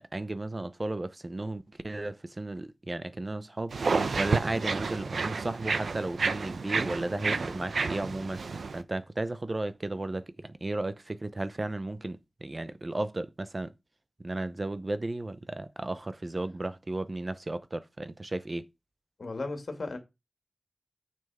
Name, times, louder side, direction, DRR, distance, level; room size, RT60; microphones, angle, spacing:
voice 1, 0.0-3.7 4.1-13.7 14.2-18.7, right 2 dB, 30° right, 0.6 m, -34 dB
sound 1, 3.7-8.8, right 4 dB, 80° right, 0.6 m, -30 dB
voice 2, 19.2-20.0, left 3 dB, 60° left, 2.2 m, -35 dB
6.9 x 6.4 x 4.9 m
wide cardioid pair, 85°, 0 cm